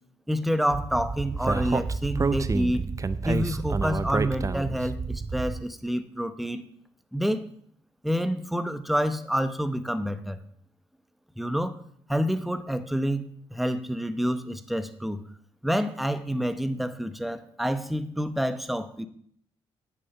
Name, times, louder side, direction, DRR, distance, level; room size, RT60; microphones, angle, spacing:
voice 1, 0.3-2.8 3.2-6.7 7.1-7.5 8.0-10.4 11.4-11.8 12.1-15.2 15.6-19.1, equal, ahead, 11 dB, 0.9 m, -28 dB
Speech, 0.7-5.6, right 4 dB, 25° right, 0.6 m, -29 dB
8.6 x 6.8 x 5.5 m, 0.64 s
supercardioid pair, 55°, 12 cm